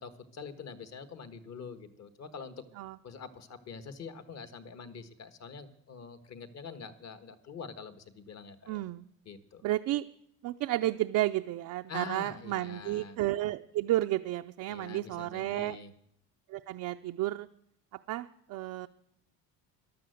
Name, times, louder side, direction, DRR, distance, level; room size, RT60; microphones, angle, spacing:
voice 1, 0.0-2.5 3.0-8.8 9.2-9.6 11.9-13.2 14.7-15.9, left 5 dB, 45° left, 10 dB, 1.5 m, -45 dB
voice 2, 8.7-9.0 9.6-10.1 10.4-15.8 16.5-17.5 18.1-18.9, right 15 dB, 60° right, 6 dB, 0.5 m, -32 dB
13.5 x 11.0 x 7.9 m, 0.74 s
cardioid pair, 135°, 36 cm